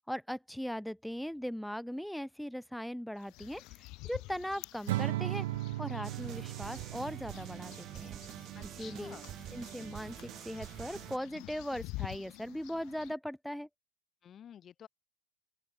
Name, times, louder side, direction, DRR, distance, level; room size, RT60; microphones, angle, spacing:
voice 1, 0.0-5.5 5.8-8.2 8.6-9.2 9.5-13.7, equal, ahead, 2.3 m, -39 dB
sound 1, 3.2-13.1, left 22 dB, 40° left, 2.7 m, -49 dB
Acoustic guitar / Strum, 4.9-8.2, right 16 dB, 55° right, 0.9 m, -36 dB
sound 2, 6.0-11.2, right 13 dB, 30° right, 3.6 m, -46 dB
voice 2, 8.5-9.3 14.2-14.9, left 9 dB, 25° left, 5.0 m, -51 dB
open air
figure-of-eight pair, 90°, 0 cm